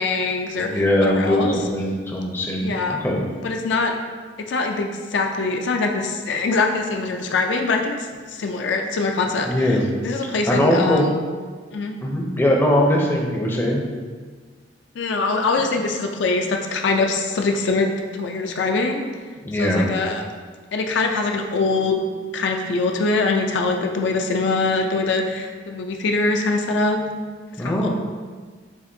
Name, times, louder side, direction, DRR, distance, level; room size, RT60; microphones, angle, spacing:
voice 1, 0.0-0.7 1.0-1.5 2.6-3.0 3.4-3.9 4.4-8.0 8.3-9.8 10.0-11.2 11.7-11.9 15.0-19.1 19.6-20.2 20.7-22.0 22.3-27.0 27.6-27.9, left 3 dB, 70° left, 3 dB, 0.4 m, -23 dB
voice 2, 0.6-3.2 9.5-9.8 10.5-11.1 12.0-13.8 19.4-19.9 27.6-27.9, left 1 dB, 10° left, -2 dB, 0.5 m, -20 dB
7.1 x 2.4 x 2.6 m, 1.5 s
head